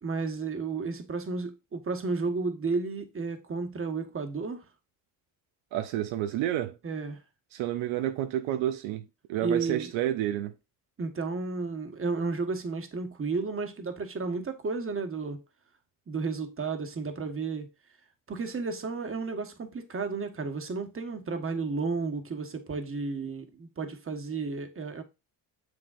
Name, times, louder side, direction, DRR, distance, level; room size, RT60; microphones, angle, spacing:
voice 1, 0.0-4.6 6.8-7.2 9.4-9.9 11.0-15.4 16.1-17.7 18.3-25.0, right 4 dB, 30° right, 1.4 m, -32 dB
voice 2, 5.7-6.8 7.5-9.0 9.3-10.5, right 12 dB, 80° right, 0.8 m, -30 dB
6.8 x 6.4 x 2.5 m
supercardioid pair, 85°, 46 cm